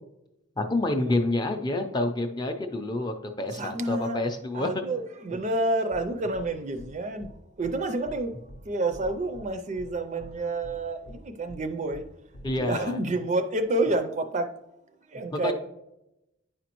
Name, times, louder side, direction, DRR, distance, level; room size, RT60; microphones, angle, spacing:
voice 1, 0.6-4.7 12.4-13.0 15.3-15.5, left 2 dB, 20° left, 0.5 m, -28 dB
voice 2, 3.2-4.2 4.5-7.3 7.6-8.3 8.6-12.0 12.6-14.5 15.1-15.5, right 2 dB, 35° right, 0.4 m, -29 dB
sound 1, 5.9-6.0 6.3-6.5 6.8-6.9 7.2-7.3 7.6-7.8 8.1-8.2 8.5-8.6 8.9-9.5 9.8-9.9 10.2-10.3 10.6-10.8 11.1-11.2 11.5-11.6 11.9-12.0 12.3-12.6, equal, 65° left, 0.6 m, -44 dB
9.5 x 5.0 x 3.0 m
head